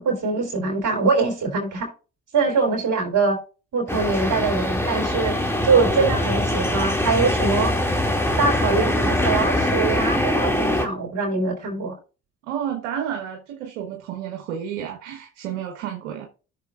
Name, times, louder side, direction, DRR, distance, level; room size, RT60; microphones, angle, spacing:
voice 1, 0.0-1.9 2.3-3.4 3.7-5.4 5.6-7.7 8.4-11.9, right 4 dB, 60° right, 3.8 m, -23 dB
sound 1, 3.9-10.9, left 1 dB, 5° left, 2.4 m, -23 dB
voice 2, 12.4-16.3, right 9 dB, 90° right, 1.3 m, -31 dB
14.0 x 6.7 x 2.5 m
hypercardioid pair, 55°, 36 cm